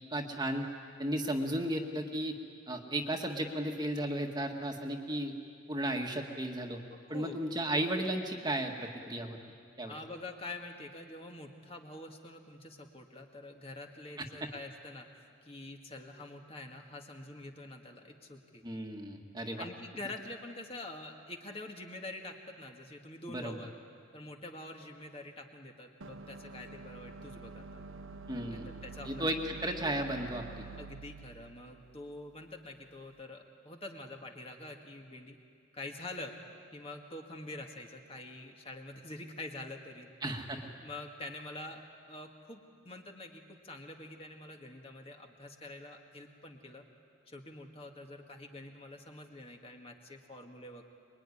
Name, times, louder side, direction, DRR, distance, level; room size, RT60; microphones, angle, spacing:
voice 1, 0.1-0.6 1.0-2.3 2.7-5.3 5.7-6.8 7.1-9.4 9.8-9.9 14.2-14.3 18.6-19.7 23.3-23.6 28.3-28.7 29.0-30.6 40.2-40.7, right 1 dB, 20° right, 3 dB, 1.7 m, -34 dB
voice 2, 7.1-7.4 9.9-18.6 19.6-23.7 24.1-27.8 28.5-29.3 30.8-35.4 35.7-36.3 36.7-40.1 40.8-46.8 47.3-50.8, left 2 dB, 30° left, 2 dB, 1.8 m, -46 dB
sound 1, 26.0-33.1, right 4 dB, 90° right, 1.0 m, -48 dB
25.0 x 22.5 x 9.9 m, 2.3 s
head